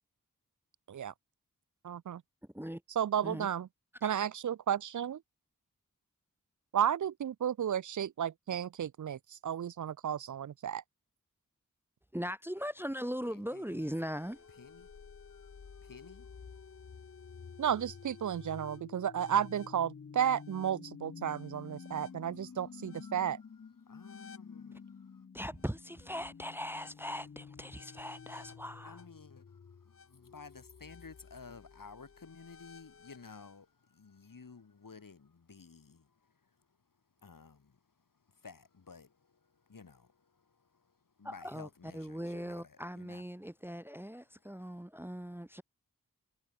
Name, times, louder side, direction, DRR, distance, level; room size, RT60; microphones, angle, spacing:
voice 1, 1.9-2.2 3.0-3.7 4.0-5.2 6.7-10.8 17.6-23.4, right 9 dB, 65° right, 0.5 m, -33 dB
voice 2, 12.1-14.5 25.3-29.0 41.2-41.7 41.9-45.6, equal, 5° right, 0.8 m, -40 dB
voice 3, 13.2-13.9 14.5-17.6 18.5-18.8 21.8-25.2 28.8-29.8 30.1-43.5 44.2-44.8, left 5 dB, 80° left, 6.9 m, -55 dB
sound 1, 13.8-33.6, left 6 dB, 45° left, 0.7 m, -51 dB
wide cardioid pair, 55°, 32 cm